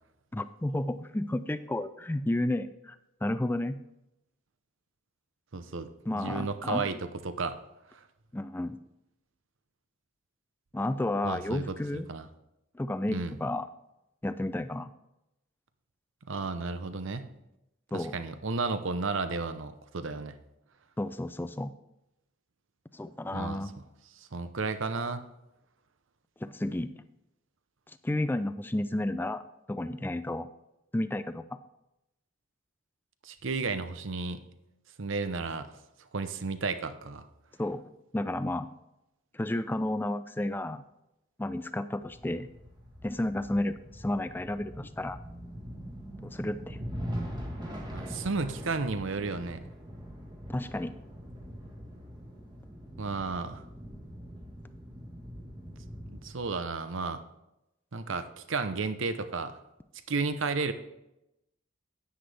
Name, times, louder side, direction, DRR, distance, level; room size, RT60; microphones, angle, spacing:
voice 1, 0.3-3.0 3.2-3.8 6.1-6.9 8.3-8.8 10.7-12.1 12.7-13.7 14.2-14.9 17.9-18.2 21.0-21.7 22.9-23.7 26.4-27.0 27.9-30.5 30.9-31.4 37.6-37.8 38.1-38.7 39.3-40.8 41.4-42.5 43.0-45.2 46.2-46.8 50.5-50.9, left 1 dB, 10° left, 12 dB, 0.3 m, -32 dB
voice 2, 5.5-7.6 7.9-8.0 11.2-12.3 13.1-13.3 16.3-17.3 17.9-20.4 23.3-23.6 24.2-25.2 33.2-34.4 35.0-35.7 36.1-37.3 47.9-49.6 53.0-53.6 56.1-57.2 57.9-59.6 60.1-60.7, right 4 dB, 65° right, 11 dB, 0.7 m, -33 dB
sound 1, 42.0-56.4, equal, 20° right, 1.5 m, -42 dB
10.0 x 9.4 x 3.4 m, 0.88 s
head